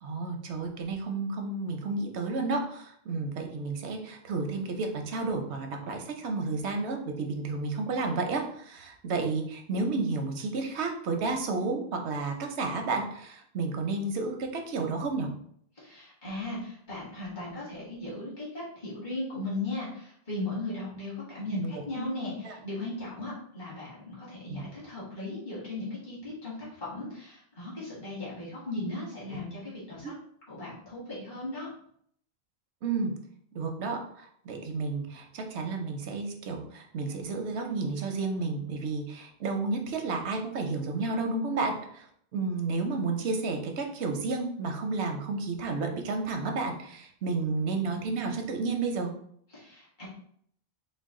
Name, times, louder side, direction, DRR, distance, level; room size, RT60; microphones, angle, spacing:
voice 1, 0.0-15.3 21.5-22.1 22.4-22.6 24.5-24.7 30.0-30.1 32.8-33.1 33.5-42.0 42.3-49.1, right 3 dB, 90° right, 4 dB, 0.9 m, -31 dB
voice 2, 15.8-30.1 30.5-31.7 49.5-50.1, left 2 dB, 50° left, -8 dB, 1.8 m, -37 dB
3.9 x 2.2 x 3.6 m, 0.66 s
omnidirectional pair, 1.1 m